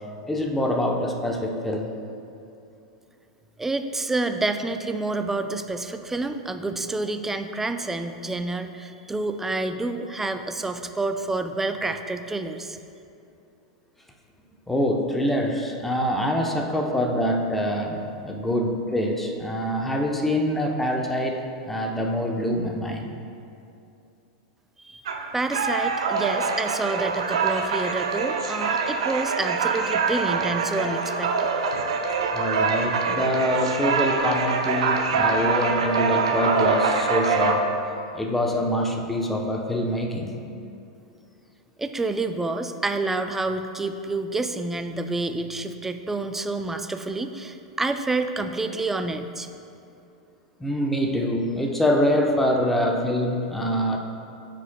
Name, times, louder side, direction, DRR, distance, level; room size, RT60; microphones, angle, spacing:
voice 1, 0.3-1.9 14.7-23.1 32.3-37.7 38.1-40.4 50.6-54.0, equal, 5° left, 1 dB, 0.8 m, -25 dB
voice 2, 3.6-12.8 24.8-25.0 25.3-31.5 41.8-49.5, right 2 dB, 10° right, 8 dB, 0.4 m, -28 dB
sound 1, 25.1-37.6, right 5 dB, 75° right, 0.6 m, -24 dB
13.0 x 5.0 x 2.3 m, 2.6 s
hypercardioid pair, 95°, 3 cm